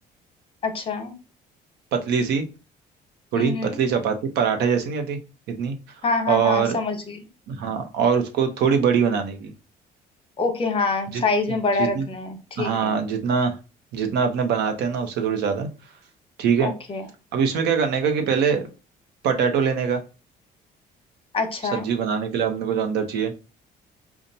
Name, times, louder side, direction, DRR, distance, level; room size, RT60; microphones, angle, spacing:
voice 1, 0.6-1.1 3.3-3.8 6.0-7.2 10.4-13.0 16.6-17.0 21.3-21.9, left 3 dB, 35° left, 6 dB, 1.0 m, -26 dB
voice 2, 1.9-2.4 3.3-5.2 5.5-5.7 6.3-6.8 7.5-9.5 11.1-11.2 11.5-12.1 12.6-13.5 13.9-15.7 16.4-16.7 17.3-18.7 19.2-20.0 21.7-23.3, right 6 dB, 80° right, 5 dB, 0.9 m, -23 dB
5.3 x 2.4 x 2.8 m, 0.32 s
cardioid pair, 110°, 17 cm